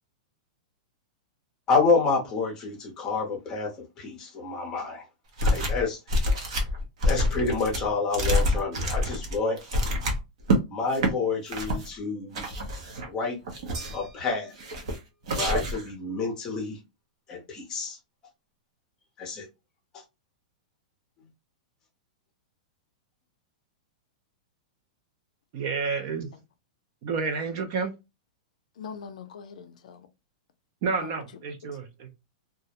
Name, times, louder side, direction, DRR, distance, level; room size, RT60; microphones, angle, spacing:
voice 1, 1.7-5.0 5.4-6.0 7.0-9.6 10.7-12.5 13.1-13.4 13.9-14.5 15.3-16.8 17.3-18.0 19.2-19.5, left 4 dB, 15° left, 0.6 m, -28 dB
sound 1, 5.4-5.8 6.1-10.6 10.9-11.1 11.5-11.9 12.3-13.1 13.5-14.1 14.6-15.0 15.3-15.9, equal, 55° right, 0.7 m, -26 dB
sound 2, 13.7-15.2, right 3 dB, 90° right, 1.1 m, -45 dB
voice 2, 25.5-26.3 27.0-27.9 30.8-32.1, right 5 dB, 35° right, 0.3 m, -30 dB
voice 3, 28.8-30.1 31.0-31.8, left 6 dB, 70° left, 0.4 m, -43 dB
2.3 x 2.0 x 2.7 m
supercardioid pair, 175°, 4 cm